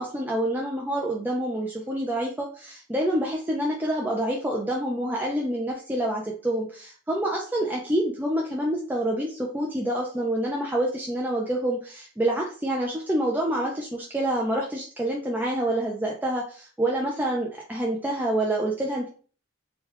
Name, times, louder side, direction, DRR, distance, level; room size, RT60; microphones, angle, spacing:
voice 1, 0.0-19.1, right 1 dB, 10° right, -2 dB, 0.4 m, -27 dB
2.9 x 2.2 x 3.2 m, 0.40 s
head